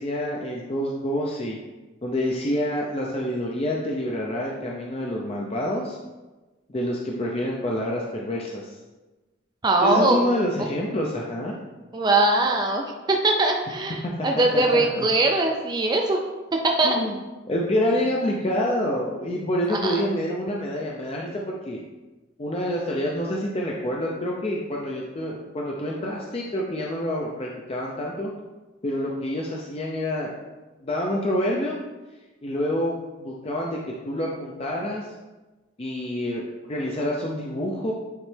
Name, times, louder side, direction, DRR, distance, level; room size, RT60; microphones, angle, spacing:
voice 1, 0.0-1.6 2.0-6.0 6.7-8.7 9.8-11.5 14.0-15.1 16.8-17.2 17.5-21.8 22.4-28.3 28.8-30.3 30.8-31.8 32.4-35.1 35.8-36.4 36.7-37.9, left 1 dB, 30° left, -2 dB, 0.5 m, -27 dB
voice 2, 9.6-10.3 11.9-16.2 16.5-17.0 19.7-20.0, right 2 dB, 20° right, 2 dB, 0.4 m, -21 dB
9.0 x 3.2 x 3.3 m, 1.2 s
head